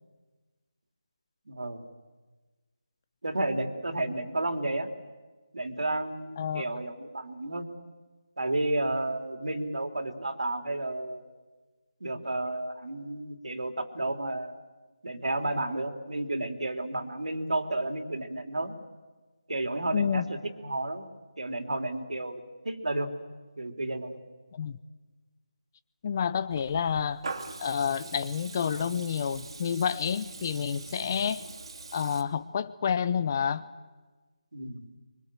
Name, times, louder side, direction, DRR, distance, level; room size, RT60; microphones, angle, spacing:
voice 1, 1.5-1.8 3.2-4.9 5.5-7.7 8.4-11.3 12.0-14.6 15.0-18.7 19.5-21.1 21.4-23.1 23.6-24.2 34.5-34.9, right 2 dB, 75° right, 5 dB, 3.5 m, -32 dB
voice 2, 19.9-20.2 24.5-24.8 26.0-27.2 27.6-31.5 31.9-33.6, left 7 dB, 30° left, 16 dB, 0.8 m, -29 dB
Water tap faucet / Liquid, 26.5-32.2, right 3 dB, 50° right, 2.8 m, -42 dB
24.5 x 24.0 x 7.7 m, 1.3 s
figure-of-eight pair, 165°, 4 cm